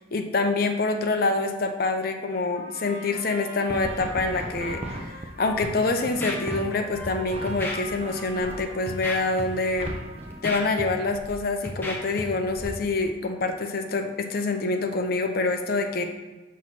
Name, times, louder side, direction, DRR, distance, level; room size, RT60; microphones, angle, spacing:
voice 1, 0.1-9.9 10.4-16.0, left 3 dB, 50° left, 5 dB, 0.6 m, -26 dB
Trumpet, 2.5-10.6, right 1 dB, 60° right, 1.8 m, -43 dB
sound 1, 3.7-6.7 7.3-10.6, right 1 dB, 30° right, 0.5 m, -38 dB
Scratching (performance technique), 5.4-5.7 6.1-6.6 6.9-7.1 7.5-7.8 8.3-8.5 8.9-9.4 9.7-9.9 10.2-11.3 11.6-12.2 12.5-12.7, left 1 dB, 10° left, 0.7 m, -34 dB
6.0 x 3.1 x 5.6 m, 1.2 s
head